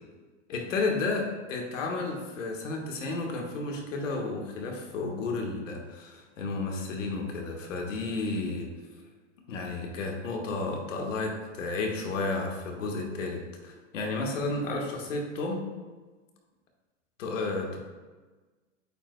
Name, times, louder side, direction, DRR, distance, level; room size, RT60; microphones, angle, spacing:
voice 1, 0.5-8.7 9.5-15.6 17.2-17.8, left 3 dB, 90° left, 1 dB, 1.5 m, -32 dB
8.5 x 5.3 x 2.2 m, 1.3 s
supercardioid pair, 150°, 37 cm